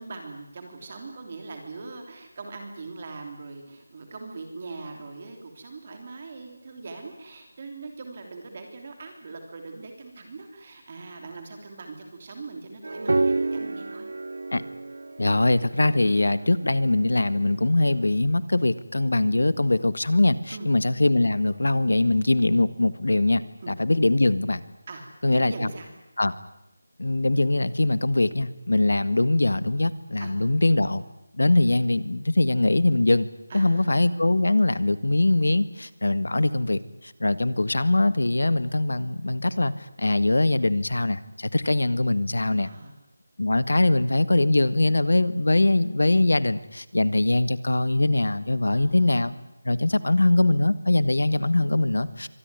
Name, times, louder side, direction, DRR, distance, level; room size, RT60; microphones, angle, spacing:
voice 1, 0.0-14.1 20.5-20.7 23.6-23.7 24.9-25.1 25.4-25.9 30.2-30.3 33.5-33.9 42.6-42.9 48.7-49.4 49.9-50.2, right 3 dB, 30° right, 4 dB, 3.1 m, -41 dB
sound 1, 12.8-17.8, right 3 dB, 65° right, 0.9 m, -30 dB
voice 2, 15.2-24.6 25.2-25.7 26.2-26.3 27.0-31.0 31.4-33.3 33.5-39.7 40.0-42.7 43.4-49.3 49.7-52.3, left 2 dB, 90° left, 14 dB, 1.7 m, -22 dB
25.0 x 19.5 x 9.6 m, 0.92 s
figure-of-eight pair, 175°, 0 cm